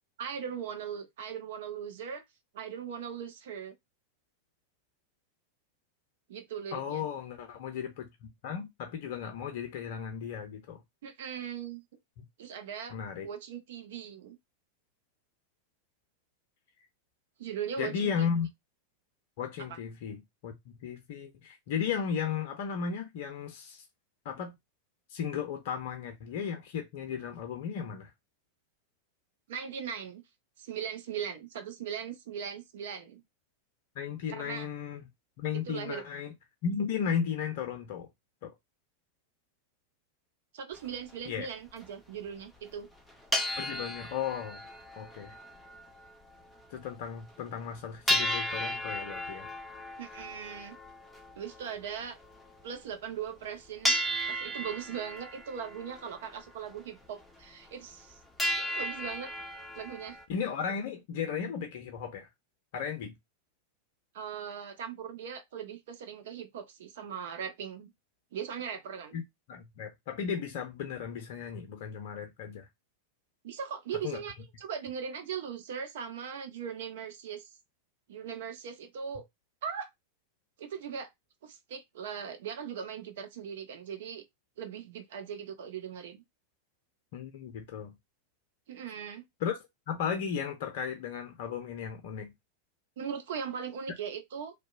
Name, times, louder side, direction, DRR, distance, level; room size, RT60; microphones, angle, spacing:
voice 1, 0.2-2.2 2.5-3.7 6.3-7.1 11.0-11.8 12.4-13.0 13.2-14.4 17.4-18.3 19.7-19.8 29.5-30.2 30.6-33.2 34.3-34.7 35.5-36.0 40.5-42.9 50.0-50.8 51.3-52.2 52.6-54.0 54.3-58.2 58.6-59.3 59.7-60.2 64.1-67.9 68.3-69.2 73.4-77.5 78.1-79.3 79.6-79.9 80.6-81.1 81.4-84.2 84.6-86.2 88.7-89.2 93.0-94.5, right 7 dB, 55° right, 0.5 m, -39 dB
voice 2, 6.7-10.8 12.2-12.3 12.9-13.3 17.8-18.5 19.4-23.8 24.2-24.5 25.1-28.1 34.0-35.0 35.4-36.3 36.6-38.1 38.4-38.5 41.3-41.5 43.6-44.6 45.0-45.4 46.7-49.5 60.3-62.3 62.7-63.1 69.1-69.2 69.5-72.7 74.0-74.2 87.1-88.0 89.4-89.6 89.9-92.3, left 7 dB, 50° left, 0.5 m, -35 dB
sound 1, 40.7-40.9 41.4-41.5 41.7-41.9 42.6-42.7 43.0-46.1 46.3-46.4 46.8-46.9 47.3-47.4 48.1-52.6 53.3-53.4 53.8-56.8 57.2-57.3 57.7-58.1 58.4-60.2, equal, 5° left, 0.6 m, -34 dB
2.7 x 2.1 x 2.4 m
figure-of-eight pair, 90°, 0 cm